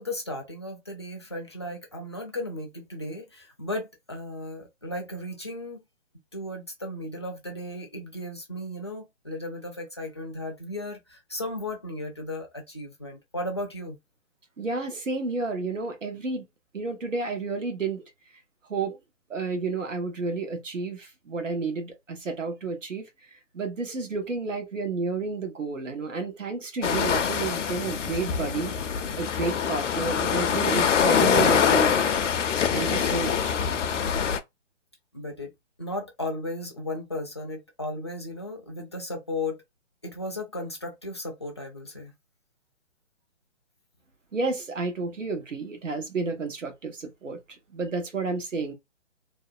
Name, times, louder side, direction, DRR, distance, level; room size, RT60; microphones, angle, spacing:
voice 1, 0.0-5.8 6.3-14.0 35.1-35.5 35.8-39.6 40.0-42.1, left 1 dB, 25° left, 0.3 m, -35 dB
voice 2, 14.6-16.4 16.7-18.0 18.7-19.0 19.3-23.1 23.5-28.7 29.2-32.2 32.7-33.6 44.3-47.4 47.7-48.7, right 4 dB, 85° right, 1.0 m, -31 dB
sound 1, 26.8-34.4, left 7 dB, 75° left, 0.5 m, -24 dB
2.7 x 2.1 x 2.4 m
figure-of-eight pair, 145°, 37 cm